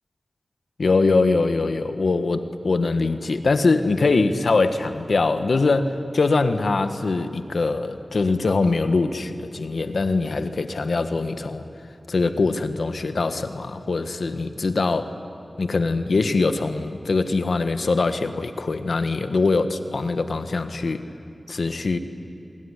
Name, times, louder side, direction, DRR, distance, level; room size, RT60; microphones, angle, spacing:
voice 1, 0.8-11.6 12.1-15.1 15.6-21.0 21.5-22.0, left 3 dB, 80° left, 9 dB, 1.3 m, -22 dB
25.0 x 21.5 x 10.0 m, 2.6 s
cardioid pair, 45°, 0 cm